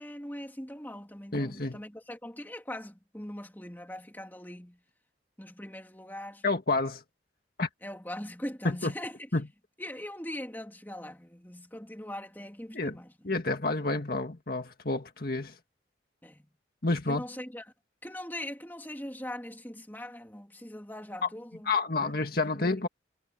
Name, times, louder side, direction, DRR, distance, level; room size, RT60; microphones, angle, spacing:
voice 1, 0.0-4.8 5.4-6.4 7.8-9.2 9.8-13.1 16.2-16.5 17.1-17.6 18.0-21.7 22.0-22.2 22.5-22.8, left 1 dB, 10° left, 3.0 m, -41 dB
voice 2, 1.3-1.8 6.4-7.0 7.6-7.7 8.6-8.9 9.3-9.5 12.7-13.0 13.2-15.6 16.8-17.2 21.2-21.3 21.7-22.9, left 3 dB, 50° left, 2.0 m, -29 dB
head